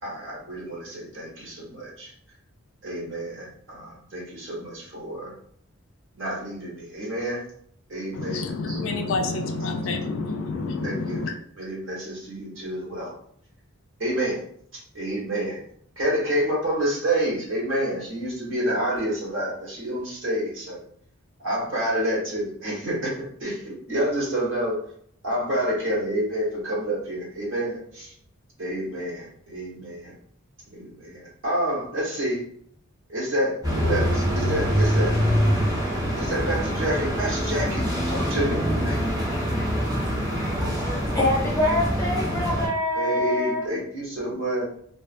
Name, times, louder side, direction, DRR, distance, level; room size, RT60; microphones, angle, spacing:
voice 1, 0.0-2.1 2.8-5.3 6.1-7.4 7.9-8.8 10.8-11.2 11.6-13.1 14.0-14.4 14.7-15.6 16.0-20.8 21.4-24.8 25.2-28.1 28.6-30.1 30.7-32.4 33.1-35.1 36.2-39.0 40.8-40.9 42.9-44.6, right 1 dB, 60° right, -5 dB, 1.1 m, -28 dB
voice 2, 8.1-11.3, left 3 dB, 60° left, 5 dB, 0.3 m, -28 dB
sound 1, 33.6-42.7, equal, 15° right, 0.9 m, -24 dB
voice 3, 41.1-43.6, left 1 dB, 15° left, -6 dB, 0.7 m, -24 dB
2.4 x 2.4 x 2.5 m, 0.64 s
head